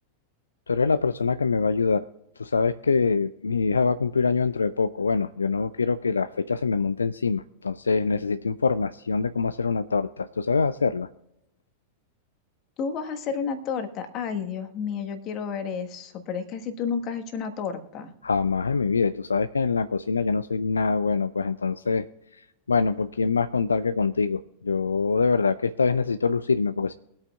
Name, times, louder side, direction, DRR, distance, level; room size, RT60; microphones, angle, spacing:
voice 1, 0.7-2.1 2.4-11.1 18.2-22.1 22.3-26.9, left 4 dB, 75° left, 13 dB, 0.3 m, -24 dB
voice 2, 12.8-18.1, left 6 dB, 35° left, 7 dB, 1.4 m, -31 dB
23.0 x 8.6 x 2.4 m, 0.86 s
figure-of-eight pair, 90°, 0 cm